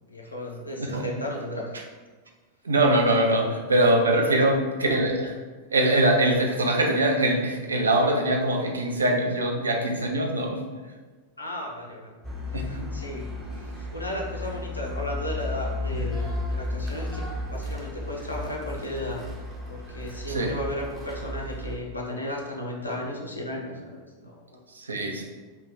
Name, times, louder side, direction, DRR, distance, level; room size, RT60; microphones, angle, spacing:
voice 1, 0.1-1.7 3.4-3.5 4.1-4.4 11.4-12.1 12.5-13.3 13.6-19.2 19.7-24.6, left 1 dB, 80° left, -2 dB, 0.4 m, -35 dB
voice 2, 0.8-1.1 2.6-5.4 5.7-10.7 12.5-12.9 15.9-16.1 20.3-20.5 24.7-25.2, right 1 dB, 75° right, 1 dB, 0.4 m, -23 dB
sound 1, 12.2-21.8, left 2 dB, 10° right, 0.5 m, -34 dB
2.2 x 2.1 x 3.3 m, 1.3 s
figure-of-eight pair, 90°, 0 cm